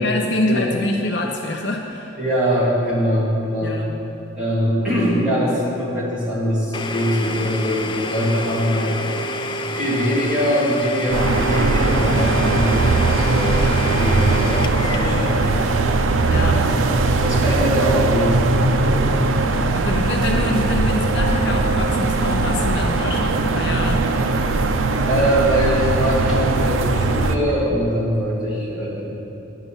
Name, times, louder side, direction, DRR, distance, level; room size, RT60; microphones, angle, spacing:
voice 1, 0.0-2.2 3.6-3.9 16.3-16.6 19.7-24.0, left 1 dB, 55° left, 1 dB, 0.7 m, -25 dB
voice 2, 2.2-3.8 4.3-9.0 9.7-13.6 14.0-15.6 15.9-16.7 17.2-19.4 25.1-29.1, equal, 5° right, -10 dB, 2.9 m, -22 dB
Domestic sounds home sounds, 6.7-18.4, left 1 dB, 25° left, 0.3 m, -29 dB
sound 1, 11.1-27.4, right 3 dB, 80° right, 0.6 m, -19 dB
11.0 x 5.7 x 7.3 m, 2.8 s
head